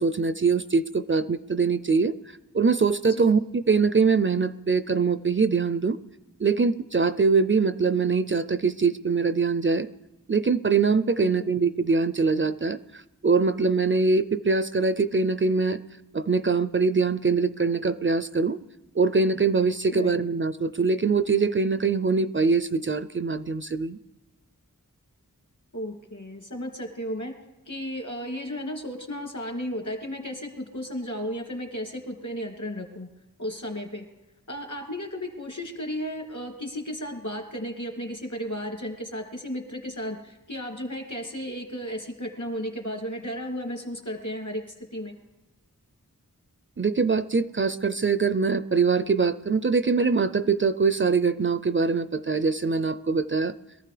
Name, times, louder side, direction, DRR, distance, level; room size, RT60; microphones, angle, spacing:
voice 1, 0.0-2.1 2.5-6.0 6.4-9.9 10.3-12.8 13.2-15.8 16.1-18.6 19.0-24.0 46.8-53.5, right 4 dB, 35° right, 13 dB, 0.4 m, -23 dB
voice 2, 25.7-27.4 27.7-33.1 33.4-34.1 34.5-45.2, equal, 60° left, 2 dB, 2.5 m, -34 dB
22.5 x 14.0 x 3.3 m, 1.0 s
wide cardioid pair, 40°, 34 cm